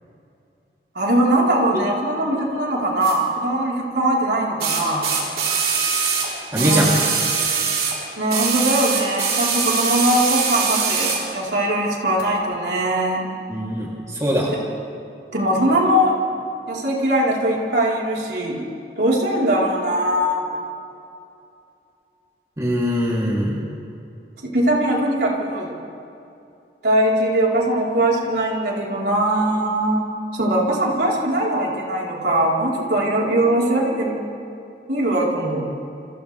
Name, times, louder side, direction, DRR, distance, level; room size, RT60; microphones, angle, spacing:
voice 1, 0.9-5.1 6.5-6.9 8.2-13.2 15.3-16.2 16.7-18.6 19.0-20.5 24.4-25.7 26.8-30.0 30.3-34.2 34.9-35.7, right 1 dB, 75° right, -4 dB, 4.2 m, -21 dB
sound 1, 3.0-3.2 4.6-8.0 8.3-11.3 12.2-12.3, right 5 dB, 55° right, 3.9 m, -22 dB
voice 2, 6.5-7.1 13.5-14.5 22.6-23.6, equal, 20° right, -5 dB, 3.1 m, -21 dB
29.0 x 26.5 x 3.5 m, 2.6 s
head